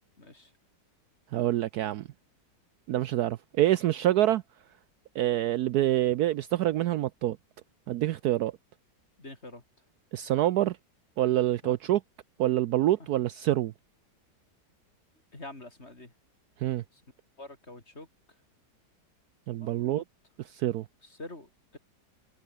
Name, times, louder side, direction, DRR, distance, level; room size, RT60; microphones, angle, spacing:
voice 1, 0.2-0.5 9.2-9.6 11.6-11.7 15.3-16.1 16.9-17.0 17.4-18.1 19.6-20.0 21.0-21.8, left 2 dB, 35° left, 5.0 m, -46 dB
voice 2, 1.3-2.1 2.9-4.4 5.2-7.4 7.9-8.5 10.1-10.8 11.2-12.0 12.4-13.7 16.6-16.8 19.5-20.0 20.5-20.8, right 13 dB, 70° right, 1.0 m, -26 dB
omnidirectional pair, 1.9 m